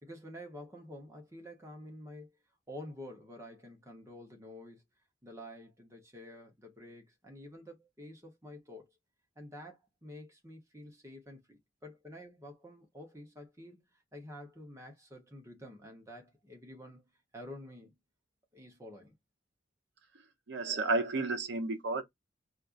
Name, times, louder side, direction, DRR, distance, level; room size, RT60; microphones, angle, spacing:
voice 1, 0.0-2.3 2.7-4.8 5.2-8.9 9.4-17.0 17.3-17.9 18.5-19.2, left 1 dB, 15° right, 0.9 m, -49 dB
voice 2, 20.5-22.0, right 3 dB, 60° right, 0.7 m, -31 dB
4.3 x 2.4 x 2.5 m
head